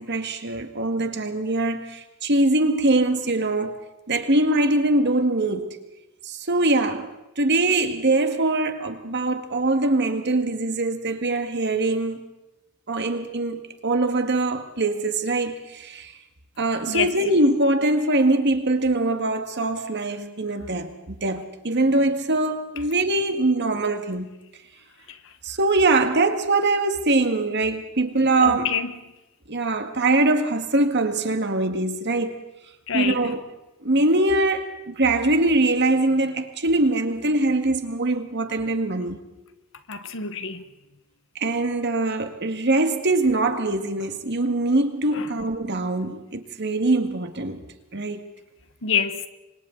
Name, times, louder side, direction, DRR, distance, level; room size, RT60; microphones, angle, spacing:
voice 1, 0.0-3.7 4.1-5.8 6.2-7.1 7.4-12.2 12.9-16.1 16.6-24.3 25.4-28.7 29.5-32.4 32.9-33.4 33.8-39.2 41.4-47.6 47.9-48.2, right 2 dB, 55° right, 2.0 m, -22 dB
voice 2, 16.9-17.2 25.1-25.2 28.4-28.9 32.9-33.3 39.9-40.7 45.1-45.4 48.8-49.3, left 6 dB, 65° left, 1.5 m, -27 dB
29.0 x 25.0 x 4.0 m
head